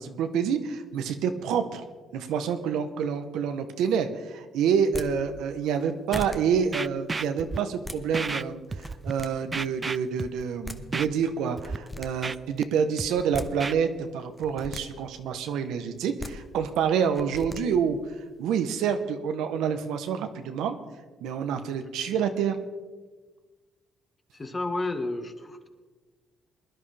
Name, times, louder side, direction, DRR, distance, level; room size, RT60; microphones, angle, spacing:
voice 1, 0.0-1.8 2.1-18.0 18.4-20.8 21.2-22.6, right 7 dB, 90° right, 8 dB, 1.0 m, -27 dB
sound 1, 4.8-5.1 5.8-5.9 6.1-6.4 7.6-8.0 8.7-9.3 10.4-10.5 10.6-10.8 11.6-12.1 13.1-13.5 14.4-14.8 16.0-16.3 17.2-17.6, left 2 dB, 10° left, 0.9 m, -38 dB
Scratching (performance technique), 6.1-6.2 6.7-7.6 8.1-8.4 8.7-9.1 9.5-10.4 10.9-11.1 11.6-11.8 12.0-12.6 13.0-13.7, right 4 dB, 30° right, 0.3 m, -32 dB
voice 2, 24.3-25.7, left 2 dB, 30° left, 5 dB, 1.6 m, -31 dB
21.0 x 11.0 x 3.4 m, 1.3 s
cardioid pair, 90°, 0 cm